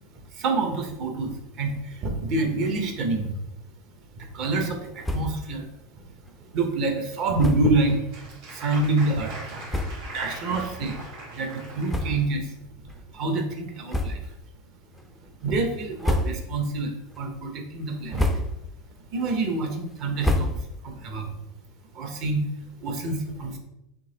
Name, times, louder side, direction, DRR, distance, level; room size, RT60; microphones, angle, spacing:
voice 1, 0.3-3.3 4.1-5.7 6.4-8.0 8.5-9.6 10.1-11.0 11.3-12.5 13.1-14.3 15.4-18.3 19.1-20.5 20.8-21.3 21.9-22.5 22.8-23.6, right 3 dB, 45° right, 4 dB, 0.8 m, -27 dB
sound 1, 5.0-5.5 5.8-5.9 6.2-6.4 7.4-7.8 8.5-8.6 9.3-9.4 9.7-10.2 10.8-10.9 11.8-12.5 12.9-13.0 13.9-14.5 14.9-15.3 15.8-16.7 17.1-17.5 17.9-18.8 19.1-21.0, left 1 dB, 5° left, 0.4 m, -29 dB
Applause, 7.6-12.2, right 2 dB, 65° right, 1.4 m, -42 dB
3.8 x 2.8 x 3.9 m, 0.90 s
supercardioid pair, 145°, 0 cm